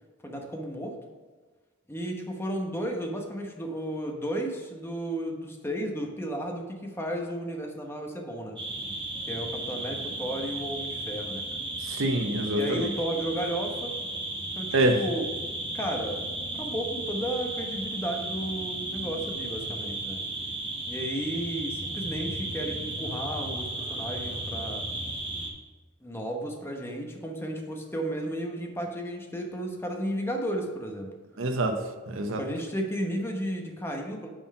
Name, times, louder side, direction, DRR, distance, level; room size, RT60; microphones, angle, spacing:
voice 1, 0.2-1.0 1.9-8.6 9.3-11.6 12.6-14.0 14.6-15.3 15.7-20.2 20.9-24.9 26.0-31.1 32.4-34.3, right 1 dB, 10° left, 1.0 m, -33 dB
sound 1, 8.6-25.5, right 2 dB, 25° right, 1.3 m, -34 dB
voice 2, 11.8-12.9 14.7-15.0 31.4-31.8 32.1-32.4, right 1 dB, 65° right, 0.9 m, -26 dB
9.3 x 4.4 x 5.4 m
head